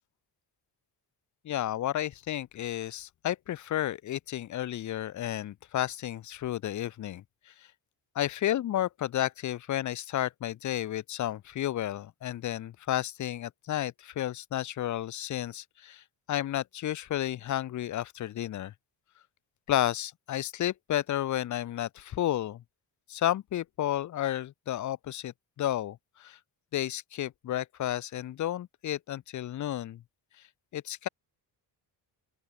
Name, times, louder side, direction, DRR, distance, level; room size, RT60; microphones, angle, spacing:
voice 1, 1.4-7.7 8.1-18.7 19.7-22.6 23.1-26.4 26.7-30.0 30.7-31.1, left 12 dB, 45° left, 0.6 m, -32 dB
open air
cardioid pair, 160°, 43 cm